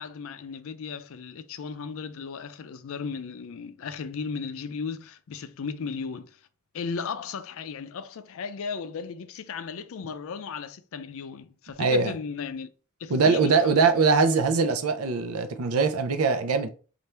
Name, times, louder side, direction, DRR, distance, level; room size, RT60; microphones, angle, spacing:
voice 1, 0.0-6.4 6.7-12.7 13.0-13.8, left 5 dB, 70° left, 0.4 m, -36 dB
voice 2, 11.8-12.1 13.1-16.7, right 4 dB, 85° right, 0.5 m, -22 dB
3.3 x 2.5 x 4.3 m
head